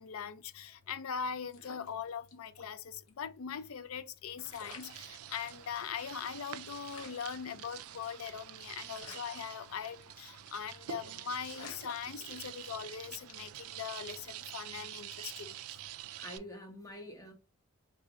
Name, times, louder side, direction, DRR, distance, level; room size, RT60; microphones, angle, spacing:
voice 1, 0.0-15.5, left 7 dB, 65° left, 0.4 m, -41 dB
sound 1, 1.5-2.7 3.0-3.1 4.1-4.2 4.5-5.7 6.1-6.2 6.4-6.5 6.9-8.4 8.9-10.2 10.5-10.8 11.1-11.2 11.4-12.8 13.3-13.6, left 4 dB, 80° left, 0.9 m, -52 dB
sound 2, 4.4-16.4, right 12 dB, 75° right, 0.3 m, -47 dB
voice 2, 16.2-17.3, equal, 15° left, 0.9 m, -47 dB
3.4 x 2.5 x 2.8 m
head